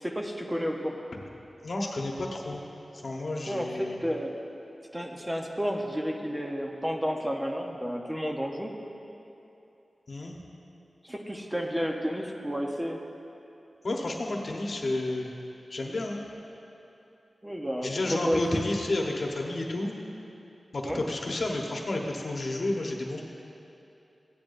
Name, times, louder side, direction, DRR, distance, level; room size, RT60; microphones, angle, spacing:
voice 1, 0.0-1.0 3.5-4.3 4.9-8.7 11.0-13.0 17.4-18.6 20.8-21.0, equal, 15° right, 1 dB, 0.9 m, -31 dB
voice 2, 1.6-2.6 3.0-4.0 10.1-10.4 13.8-15.3 15.7-16.2 17.8-19.9 20.7-23.2, left 2 dB, 60° left, 0 dB, 1.1 m, -31 dB
15.5 x 9.5 x 2.6 m, 2.8 s
wide cardioid pair, 65°, 0 cm